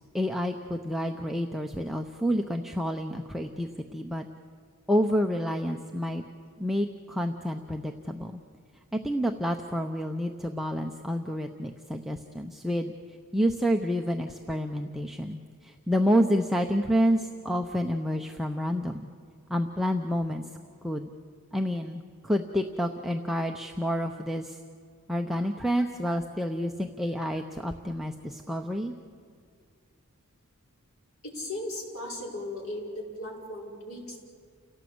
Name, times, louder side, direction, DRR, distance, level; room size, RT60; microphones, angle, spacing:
voice 1, 0.0-4.3 4.9-6.2 6.6-8.4 8.9-12.9 13.3-19.1 19.5-20.4 20.8-21.1 21.5-24.6 25.1-28.9, equal, ahead, 2 dB, 0.7 m, -29 dB
voice 2, 31.2-34.2, left 1 dB, 80° left, -2 dB, 5.7 m, -37 dB
29.5 x 17.5 x 7.9 m, 2.2 s
head